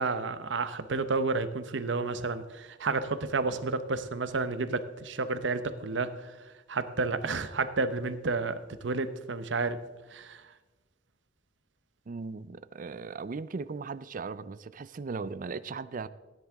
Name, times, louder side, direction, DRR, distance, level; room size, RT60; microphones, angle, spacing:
voice 1, 0.0-6.3 6.7-9.8 10.1-10.4, right 3 dB, 80° right, 12 dB, 0.8 m, -31 dB
voice 2, 12.1-16.1, right 4 dB, 45° right, 15 dB, 0.4 m, -38 dB
16.5 x 10.5 x 3.5 m, 1.2 s
head